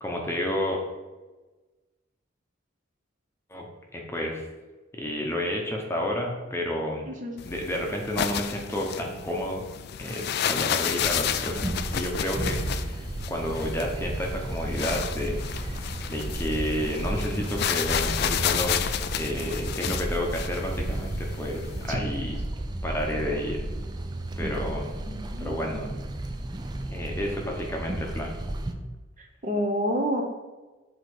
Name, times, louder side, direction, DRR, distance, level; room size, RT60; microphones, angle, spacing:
voice 1, 0.0-0.8 3.5-3.7 3.9-4.4 4.9-7.1 7.4-9.6 10.0-18.8 19.1-22.3 22.8-23.7 24.4-24.9 25.4-25.9 26.9-28.3, equal, 15° left, 0 dB, 0.8 m, -31 dB
sound 1, 7.4-21.9, left 9 dB, 55° left, 0.3 m, -32 dB
sound 2, 11.0-28.7, right 1 dB, 20° right, 0.4 m, -33 dB
voice 2, 25.0-25.9 29.2-30.2, equal, 40° right, 1 dB, 0.9 m, -29 dB
6.2 x 3.9 x 4.8 m, 1.2 s
head